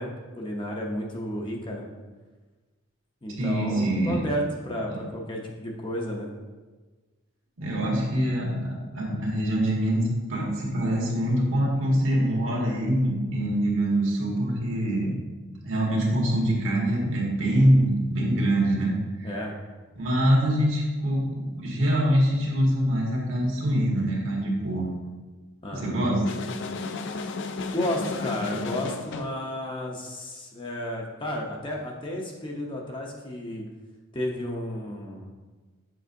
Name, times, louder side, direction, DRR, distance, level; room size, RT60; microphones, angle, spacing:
voice 1, 0.0-1.9 3.2-6.3 19.2-19.5 25.6-26.1 27.7-33.7 34.1-35.3, left 1 dB, 25° left, -1 dB, 0.7 m, -32 dB
voice 2, 3.4-4.2 4.9-5.0 7.6-15.1 15.6-18.9 19.2-19.4 19.9-24.9 25.7-26.3, right 1 dB, 65° right, -3 dB, 1.6 m, -24 dB
sound 1, 26.2-29.4, left 4 dB, 55° left, 0.4 m, -33 dB
7.6 x 5.4 x 2.7 m, 1.3 s
head